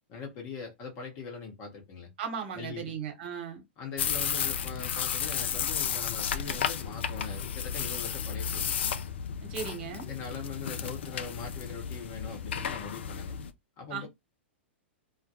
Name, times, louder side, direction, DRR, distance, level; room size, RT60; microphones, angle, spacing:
voice 1, 0.0-2.1 2.5-3.0 3.8-8.7 10.1-13.4 13.8-14.1, left 5 dB, 40° left, 0.9 m, -41 dB
voice 2, 2.2-3.6 9.4-10.1 13.9-14.1, right 7 dB, 55° right, 1.0 m, -37 dB
sound 1, 4.0-13.5, left 8 dB, 65° left, 0.3 m, -33 dB
2.2 x 2.1 x 2.8 m
hypercardioid pair, 105°, 6 cm